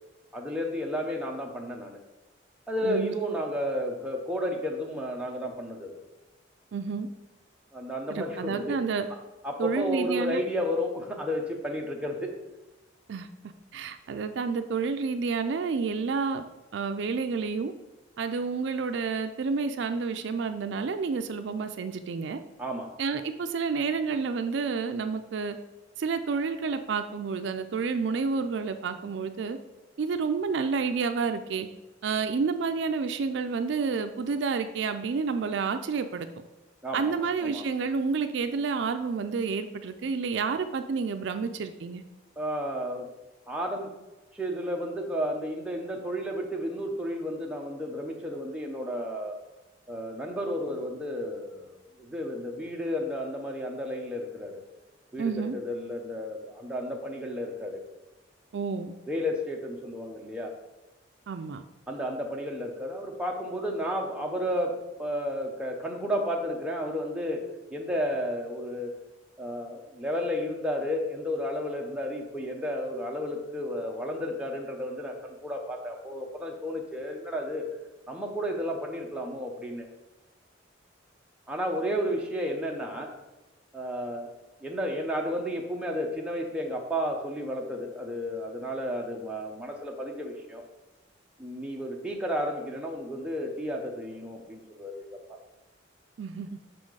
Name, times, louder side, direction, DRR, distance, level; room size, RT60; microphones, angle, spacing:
voice 1, 0.3-2.0 2.7-5.9 7.7-8.8 9.4-12.3 22.6-22.9 36.8-37.6 42.4-43.1 43.5-43.9 44.3-49.4 49.9-54.6 55.1-57.8 59.1-60.5 61.9-68.9 69.4-77.7 78.1-79.9 81.5-83.1 83.7-84.3 84.6-90.6 91.4-95.2, equal, 5° right, -1 dB, 0.8 m, -32 dB
voice 2, 2.8-3.1 6.7-7.1 8.1-9.1 9.6-10.4 13.1-13.3 13.7-16.4 16.7-17.7 18.2-22.4 23.0-25.6 26.0-29.6 30.0-31.7 32.0-36.3 36.9-42.0 55.2-55.6 58.5-58.9 61.3-61.6 96.2-96.5, right 5 dB, 65° right, 8 dB, 0.4 m, -29 dB
6.2 x 4.3 x 4.7 m, 1.1 s
head